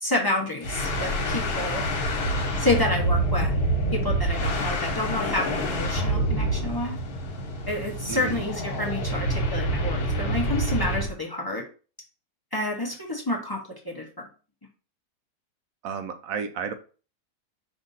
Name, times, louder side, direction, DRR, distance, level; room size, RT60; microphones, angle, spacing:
voice 1, 0.0-1.8 2.6-3.5 3.9-7.0 7.6-11.6 12.5-13.6 13.8-14.0, left 2 dB, 25° left, -1 dB, 0.6 m, -29 dB
sound 1, 0.6-11.1, right 1 dB, 70° left, 1.5 m, -27 dB
voice 2, 8.1-8.4 15.8-16.7, right 6 dB, 70° right, 8 dB, 1.0 m, -32 dB
5.0 x 2.6 x 3.9 m, 0.37 s
omnidirectional pair, 1.6 m